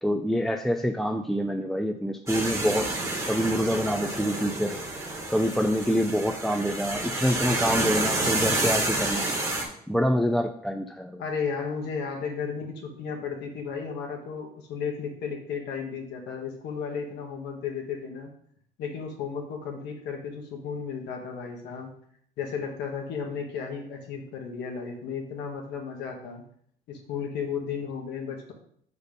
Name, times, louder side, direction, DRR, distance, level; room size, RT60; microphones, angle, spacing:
voice 1, 0.0-4.8 5.3-9.3 9.9-11.2, equal, ahead, 4 dB, 0.4 m, -26 dB
sound 1, 2.3-9.7, right 2 dB, 20° right, 1.5 m, -29 dB
voice 2, 11.2-18.3 18.8-21.9 22.4-26.4 26.9-28.5, left 6 dB, 80° left, 2 dB, 1.4 m, -34 dB
5.1 x 4.2 x 5.2 m, 0.65 s
cardioid pair, 110°, 17 cm